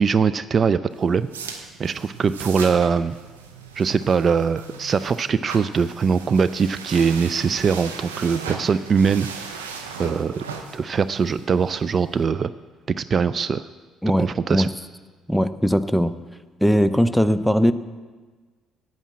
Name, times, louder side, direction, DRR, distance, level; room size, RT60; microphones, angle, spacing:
voice 1, 0.0-3.2 3.8-9.7 10.0-10.4 10.7-12.5 12.9-13.6 14.2-14.7, right 6 dB, 45° right, 15 dB, 0.3 m, -22 dB
sound 1, 0.9-12.2, right 5 dB, 90° right, 0.8 m, -38 dB
voice 2, 14.0-14.7 15.3-16.1 16.6-17.7, equal, ahead, 11 dB, 0.6 m, -19 dB
9.0 x 8.7 x 7.4 m, 1.4 s
hypercardioid pair, 50°, 0 cm